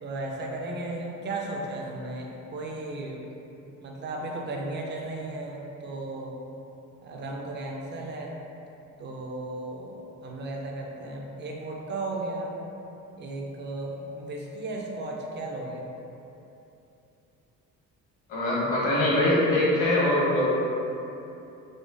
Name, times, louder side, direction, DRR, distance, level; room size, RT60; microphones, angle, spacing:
voice 1, 0.0-3.3 3.8-6.3 7.0-8.4 9.0-12.5 13.2-15.8, right 2 dB, 35° right, -1 dB, 0.4 m, -35 dB
voice 2, 18.3-20.4, left 1 dB, 70° left, -7 dB, 1.2 m, -23 dB
5.0 x 2.2 x 2.5 m, 2.9 s
cardioid pair, 145°, 32 cm